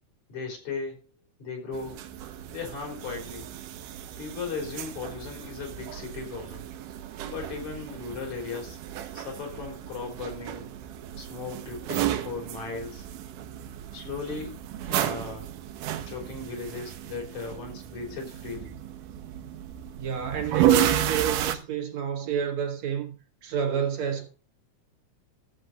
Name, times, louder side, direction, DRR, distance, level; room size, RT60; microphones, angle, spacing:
voice 1, 0.3-1.0 1.4-2.0 2.5-3.5 4.2-6.7 7.2-8.8 9.1-10.7 11.1-13.1 13.9-15.6 15.9-18.8, left 4 dB, 65° left, 4.9 m, -37 dB
sound 1, 1.7-21.6, right 11 dB, 90° right, 2.5 m, -32 dB
voice 2, 20.0-24.3, right 8 dB, 65° right, 2.8 m, -30 dB
14.0 x 7.9 x 4.1 m
omnidirectional pair, 3.6 m